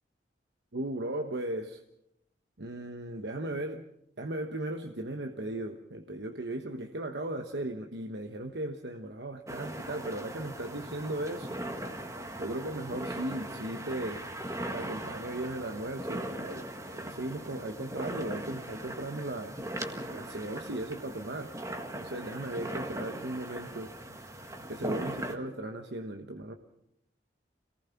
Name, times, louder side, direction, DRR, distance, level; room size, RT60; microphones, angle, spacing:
voice 1, 0.7-1.8 2.6-3.8 4.2-11.6 12.4-16.6 16.9-19.5 20.1-21.5 21.9-23.9 24.7-26.5, right 1 dB, 70° right, 5 dB, 1.2 m, -37 dB
sound 1, 9.5-25.4, right 1 dB, 20° right, 1.7 m, -39 dB
27.0 x 18.5 x 5.9 m, 0.79 s
head